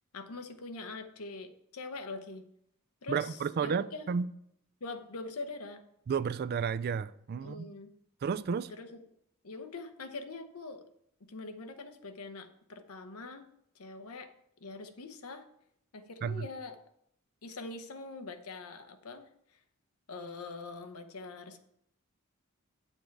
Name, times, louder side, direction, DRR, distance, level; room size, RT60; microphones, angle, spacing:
voice 1, 0.1-2.4 3.0-4.1 4.8-5.8 7.3-7.9 8.7-9.0 9.4-10.8 11.2-13.5 13.7-14.3 14.6-15.4 15.9-16.8 17.4-19.3 20.1-21.6, left 3 dB, 75° left, 0.9 m, -43 dB
voice 2, 3.1-4.3 6.1-7.7 8.2-8.7 16.2-16.5, right 6 dB, 45° right, 0.3 m, -32 dB
8.5 x 7.1 x 4.6 m
head